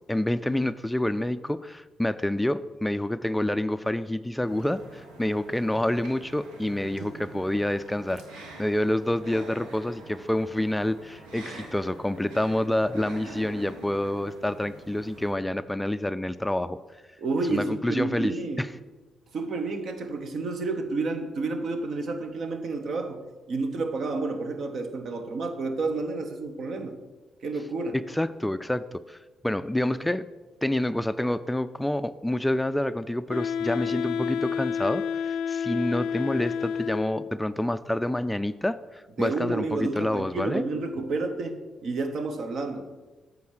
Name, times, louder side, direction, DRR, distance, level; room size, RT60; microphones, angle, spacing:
voice 1, 0.1-16.8 17.5-18.7 28.1-29.2 29.4-30.3 30.6-40.6, left 1 dB, 10° left, 13 dB, 0.3 m, -28 dB
sound 1, 4.5-15.3, right 2 dB, 90° right, 1.4 m, -46 dB
voice 2, 6.8-7.4 17.2-18.7 19.3-23.2 23.5-27.0 27.4-28.0 39.2-42.9, right 3 dB, 60° right, 7 dB, 1.1 m, -30 dB
Wind instrument woodwind instrument, 33.3-37.4, left 7 dB, 85° left, 0.4 m, -30 dB
8.4 x 4.0 x 6.4 m, 1.2 s
supercardioid pair, 65°, 0 cm